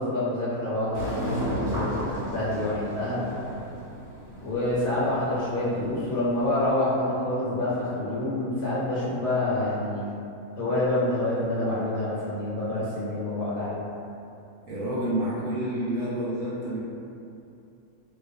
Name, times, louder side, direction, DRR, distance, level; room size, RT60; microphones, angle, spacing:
voice 1, 0.0-3.2 4.4-10.1 10.6-13.9, left 1 dB, 75° left, -9 dB, 1.0 m, -27 dB
sound 1, 0.9-6.6, equal, 40° right, 0.7 m, -34 dB
voice 2, 14.7-16.8, right 1 dB, 65° right, -8 dB, 0.9 m, -29 dB
2.4 x 2.2 x 2.5 m, 2.6 s
omnidirectional pair, 1.6 m